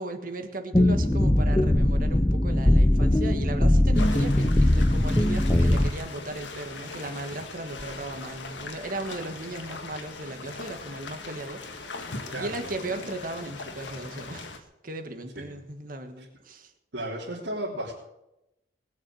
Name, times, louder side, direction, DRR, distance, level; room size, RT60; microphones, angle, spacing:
voice 1, 0.0-16.7, right 2 dB, 50° right, 6 dB, 1.7 m, -37 dB
sound 1, 0.7-5.9, left 1 dB, 15° left, 0.6 m, -21 dB
sound 2, 3.9-14.6, left 3 dB, 90° left, 1.6 m, -40 dB
voice 2, 12.3-12.7 15.4-15.5 16.2-16.3 16.9-17.9, right 1 dB, 80° right, -7 dB, 3.4 m, -34 dB
20.0 x 7.2 x 7.8 m, 0.89 s
head